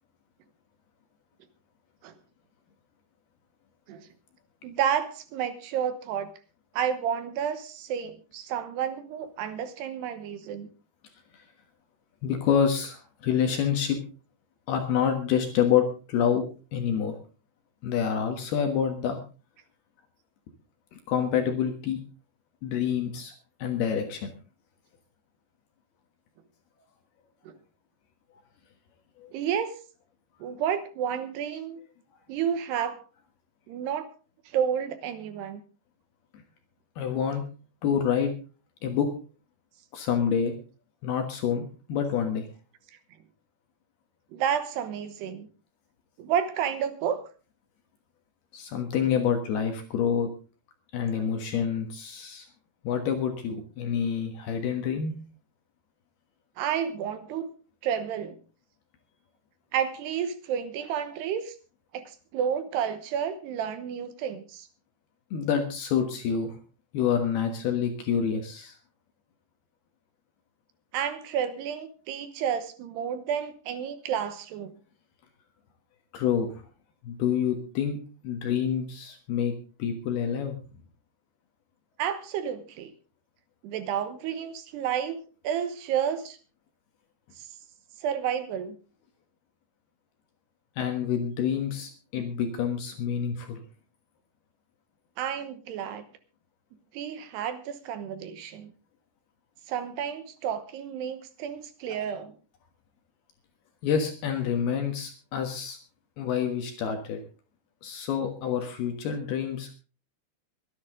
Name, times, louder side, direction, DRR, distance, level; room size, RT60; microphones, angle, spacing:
voice 1, 4.6-6.3 6.7-10.7 27.5-27.6 29.3-29.8 30.4-31.8 32.3-33.0 33.7-34.1 34.5-35.6 44.3-45.5 46.2-47.2 56.6-57.5 57.8-58.4 59.7-61.6 61.9-64.7 70.9-74.8 82.0-82.9 83.6-86.4 87.4-87.5 88.0-88.8 95.2-96.0 96.9-98.7 99.7-102.3, right 8 dB, 75° right, 10 dB, 2.9 m, -31 dB
voice 2, 12.2-14.0 14.7-16.4 16.7-17.2 17.8-19.2 20.9-22.0 22.6-23.3 23.6-24.3 29.2-29.3 37.0-37.4 37.8-38.3 38.8-39.1 39.9-40.5 41.0-42.5 48.5-50.3 50.9-52.5 52.8-55.1 65.3-66.5 66.9-68.7 76.1-76.5 77.0-78.0 78.2-79.5 79.8-80.6 90.8-93.6 103.8-105.8 106.2-107.2 107.8-109.7, left 8 dB, 65° left, 5 dB, 3.1 m, -27 dB
23.0 x 10.5 x 3.8 m, 0.35 s
omnidirectional pair, 5.3 m